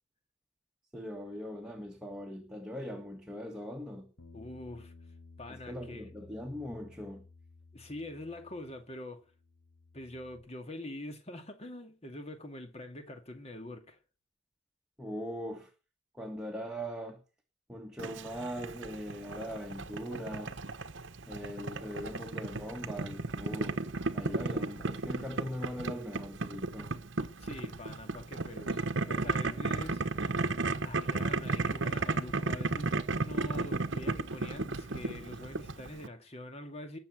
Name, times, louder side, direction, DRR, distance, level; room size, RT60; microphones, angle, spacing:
voice 1, 0.9-4.1 5.5-7.2 15.0-15.7 16.2-17.2 17.7-20.5 21.3-23.8 24.1-26.9, equal, 5° right, 1.9 m, -40 dB
Bass guitar, 4.2-8.9 9.2-10.4, left 3 dB, 80° left, 4.2 m, -55 dB
voice 2, 4.3-4.9 5.4-6.1 7.7-9.2 9.9-14.0 27.4-30.3 30.8-37.0, left 1 dB, 30° left, 2.2 m, -44 dB
Boiling, 18.0-36.1, right 3 dB, 60° right, 1.0 m, -34 dB
20.5 x 7.0 x 8.1 m
head